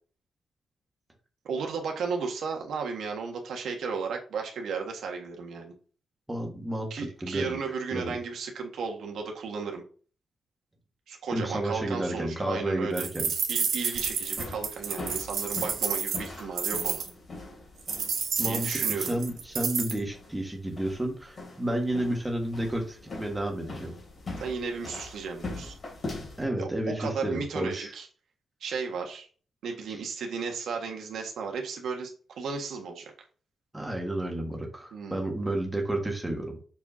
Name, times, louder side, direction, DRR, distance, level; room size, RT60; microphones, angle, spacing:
voice 1, 1.4-5.7 6.9-9.8 11.1-13.1 13.5-17.0 18.4-19.1 24.4-25.8 26.6-28.1 28.6-29.3 29.6-33.1 34.9-35.4, right 5 dB, 80° right, 2 dB, 1.6 m, -34 dB
voice 2, 6.3-6.9 7.2-7.6 7.9-8.2 11.3-13.3 18.4-23.9 26.4-27.9 33.7-36.6, right 1 dB, 10° right, 1 dB, 1.5 m, -31 dB
sound 1, 13.0-17.1 17.9-20.0, right 6 dB, 65° right, 1.4 m, -30 dB
sound 2, 13.9-26.4, left 2 dB, 35° left, 2.8 m, -42 dB
6.8 x 5.0 x 2.8 m, 0.40 s
wide cardioid pair, 180°, 0 cm